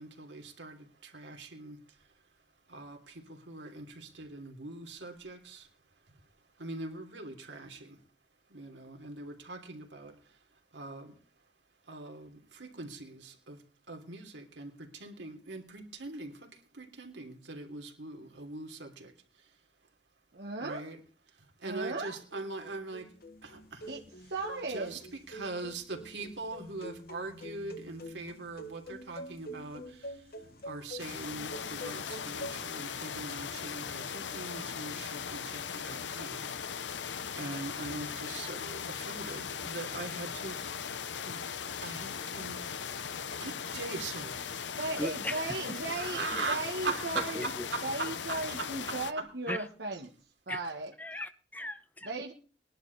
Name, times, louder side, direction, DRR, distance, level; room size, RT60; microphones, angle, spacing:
voice 1, 0.0-2.1 2.7-5.7 6.6-8.0 8.5-10.4 10.7-11.2 11.8-19.6 20.6-21.0 21.3-23.1 23.4-23.9 24.7-40.7 41.2-42.7 43.1-44.5 45.7-49.6, right 3 dB, 85° right, 3.1 m, -42 dB
voice 2, 20.3-20.8 21.6-22.2 23.9-25.0 44.8-47.5 47.8-50.1 50.5-50.9 52.0-52.3, right 2 dB, 65° right, 1.6 m, -36 dB
sound 1, 22.0-32.7, equal, 55° left, 1.4 m, -46 dB
sound 2, 31.0-49.1, left 7 dB, 90° left, 0.8 m, -39 dB
voice 3, 45.0-45.8 46.2-46.4 47.3-47.6 49.5-49.6 50.5-50.6 51.0-52.1, left 1 dB, 10° left, 0.8 m, -38 dB
20.5 x 11.5 x 4.1 m
head